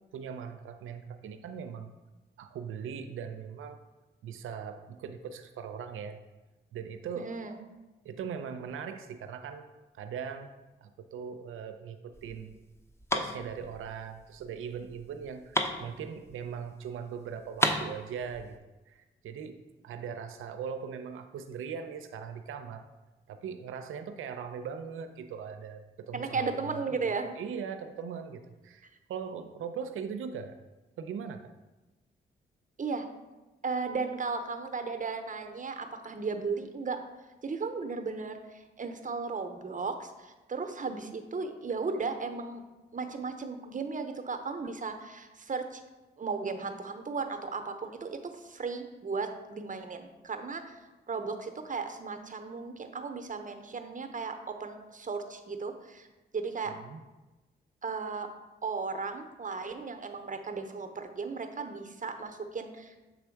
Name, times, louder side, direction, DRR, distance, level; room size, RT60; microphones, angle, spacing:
voice 1, 0.1-1.9 2.4-3.8 4.2-6.2 6.7-7.3 8.0-9.7 9.9-10.5 10.8-12.6 13.1-18.6 18.9-22.9 23.3-30.6 31.0-31.6 56.7-57.0, right 7 dB, 80° right, 8 dB, 0.5 m, -40 dB
voice 2, 7.2-7.5 26.1-27.4 32.8-33.1 33.6-37.0 37.4-42.6 42.9-45.8 46.2-50.7 51.1-56.1 56.3-56.7 57.8-58.3 58.6-63.0, right 4 dB, 40° right, 7 dB, 0.8 m, -35 dB
sound 1, 12.1-16.7 17.0-17.1 17.3-18.6, left 1 dB, 10° left, 0.7 m, -33 dB
7.1 x 3.3 x 4.5 m, 1.1 s
supercardioid pair, 50°, 21 cm